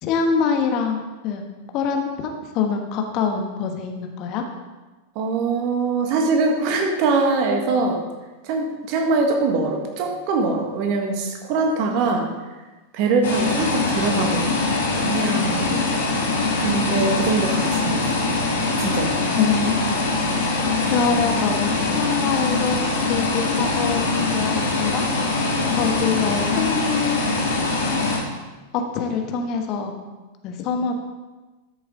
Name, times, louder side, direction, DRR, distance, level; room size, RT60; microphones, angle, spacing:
voice 1, 0.0-1.4 1.7-4.4 19.3-19.9 20.9-22.8 23.1-25.0 25.8-27.2 28.7-29.9 30.4-30.9, left 5 dB, 40° left, 4 dB, 1.2 m, -24 dB
voice 2, 5.1-8.0 8.4-12.3 12.9-14.7 15.0-15.8 16.6-18.1 18.8-19.2, right 3 dB, 45° right, 2 dB, 1.7 m, -23 dB
sound 1, 13.2-28.2, left 3 dB, 60° left, 2.2 m, -23 dB
13.0 x 7.0 x 3.8 m, 1.2 s
figure-of-eight pair, 90°, 0 cm